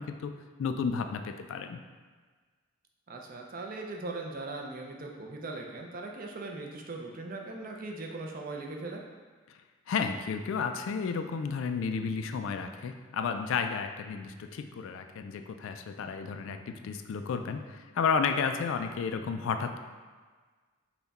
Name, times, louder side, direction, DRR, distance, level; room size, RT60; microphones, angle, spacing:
voice 1, 0.0-1.8 9.9-19.8, left 5 dB, 70° left, 8 dB, 0.3 m, -32 dB
voice 2, 3.1-9.0, right 2 dB, 40° right, 1 dB, 0.5 m, -39 dB
5.7 x 2.2 x 4.0 m, 1.5 s
head